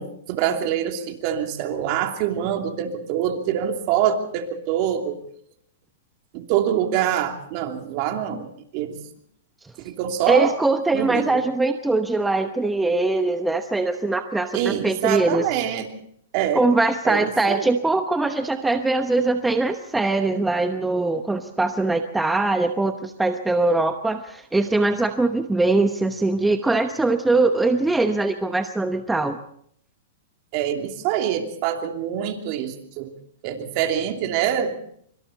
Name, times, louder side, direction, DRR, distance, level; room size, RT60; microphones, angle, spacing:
voice 1, 0.0-5.2 6.3-8.5 8.7-9.0 9.8-10.5 10.9-11.4 14.5-15.9 16.3-16.6 17.0-17.7 30.5-33.1 33.4-34.8, right 10 dB, 45° right, 4 dB, 2.9 m, -25 dB
voice 2, 10.3-15.4 16.5-29.4, right 2 dB, 5° right, 7 dB, 1.0 m, -22 dB
25.5 x 24.5 x 4.1 m, 0.66 s
hypercardioid pair, 145°, 0 cm